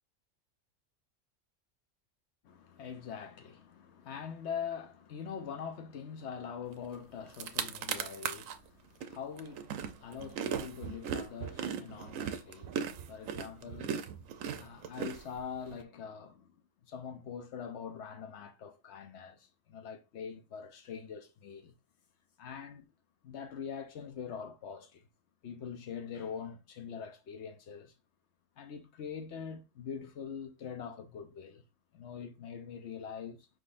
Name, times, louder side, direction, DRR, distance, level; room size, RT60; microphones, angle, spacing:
voice 1, 2.4-16.5 16.8-21.7 22.4-22.9 23.2-25.0 25.4-27.9 28.6-31.6 31.9-33.5, left 7 dB, 65° left, 0.9 m, -43 dB
sound 1, 6.9-7.0 7.3-8.6 9.0-15.8, right 8 dB, 85° right, 1.0 m, -38 dB
5.0 x 3.7 x 2.5 m
omnidirectional pair, 1.3 m